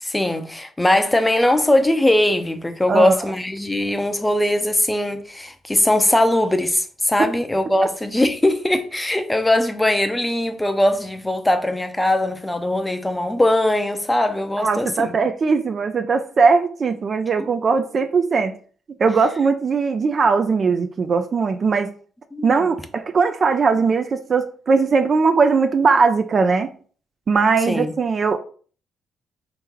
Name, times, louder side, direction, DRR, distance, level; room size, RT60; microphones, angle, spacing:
voice 1, 0.0-15.1 17.4-17.5 22.3-22.7 27.7-27.9, left 1 dB, 10° left, 0.5 m, -20 dB
voice 2, 14.6-18.6 19.0-21.9 22.4-26.7 27.3-28.4, right 4 dB, 45° right, 0.4 m, -19 dB
3.3 x 3.0 x 3.7 m
cardioid pair, 90°, 0 cm